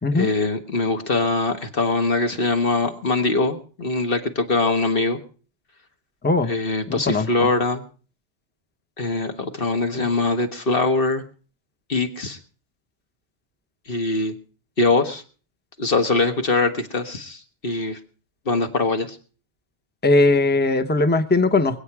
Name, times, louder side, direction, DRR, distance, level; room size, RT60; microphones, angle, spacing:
voice 1, 0.1-5.2 6.5-7.8 9.0-11.2 11.9-12.4 13.9-14.3 14.8-15.2 15.8-18.0 18.4-19.2, left 3 dB, 50° left, 6 dB, 1.8 m, -22 dB
voice 2, 6.9-7.3 20.0-21.8, left 2 dB, 10° left, 10 dB, 0.8 m, -19 dB
24.5 x 8.9 x 4.8 m, 0.39 s
omnidirectional pair, 1.3 m